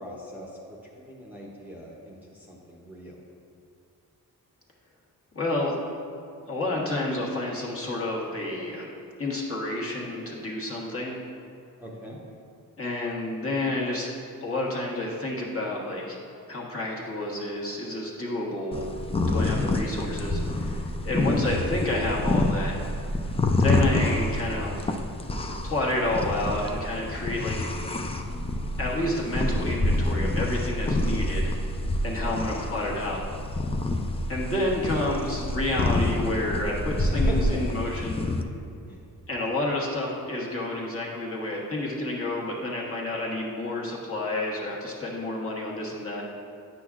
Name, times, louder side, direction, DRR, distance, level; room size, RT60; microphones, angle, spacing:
voice 1, 0.0-3.2 11.8-12.2 19.3-19.6 32.2-32.7 37.1-37.6 38.9-39.1, equal, 5° right, -4 dB, 0.8 m, -40 dB
voice 2, 5.3-5.8 6.5-8.9 9.2-11.2 12.8-14.1 14.4-16.2 16.5-18.9 19.3-22.8 23.5-24.9 25.6-27.7 28.8-31.5 32.0-33.2 34.3-38.3 39.3-46.2, left 2 dB, 35° left, -4 dB, 1.3 m, -29 dB
sound 1, 18.7-38.4, left 1 dB, 15° left, 0.4 m, -27 dB
9.3 x 6.0 x 2.5 m, 2.5 s
cardioid pair, 90°, 37 cm